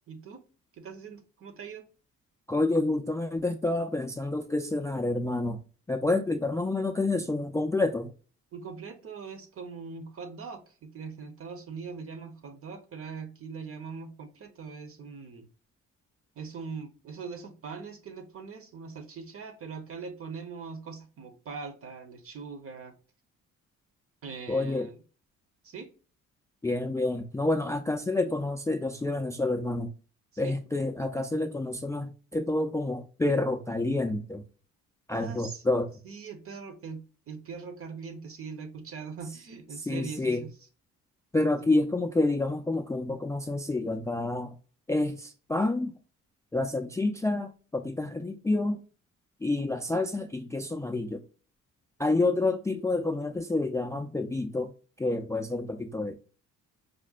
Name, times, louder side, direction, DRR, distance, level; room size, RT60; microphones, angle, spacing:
voice 1, 0.1-0.4 0.7-1.8 8.5-15.5 16.3-22.9 24.2-25.0 25.6-25.9 30.3-30.6 35.1-35.6 36.0-40.5, right 5 dB, 50° right, 0.8 m, -41 dB
voice 2, 2.5-5.6 5.9-8.1 24.5-24.9 26.6-29.9 30.4-34.4 35.1-35.9 39.9-40.4 41.3-44.6 44.9-45.9 46.5-48.8 49.4-51.2 52.0-54.7 55.0-56.1, left 2 dB, 10° left, 0.3 m, -28 dB
5.0 x 2.1 x 2.4 m
cardioid pair, 90°, 30 cm